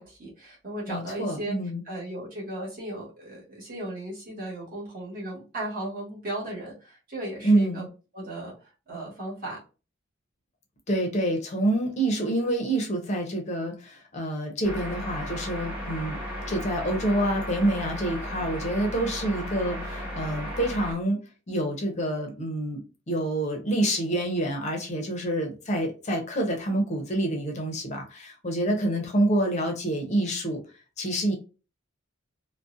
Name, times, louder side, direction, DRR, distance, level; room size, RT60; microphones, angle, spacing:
voice 1, 0.0-1.5 1.8-7.9 8.1-8.5 8.9-9.6, right 1 dB, 45° right, -4 dB, 1.2 m, -36 dB
voice 2, 0.9-1.8 7.4-7.9 10.9-16.2 16.5-21.2 21.5-22.8 23.1-30.6 31.0-31.3, right 1 dB, 35° left, 2 dB, 0.5 m, -27 dB
sound 1, 14.6-20.9, equal, 10° right, 0.9 m, -35 dB
2.5 x 2.0 x 2.4 m, 0.33 s
head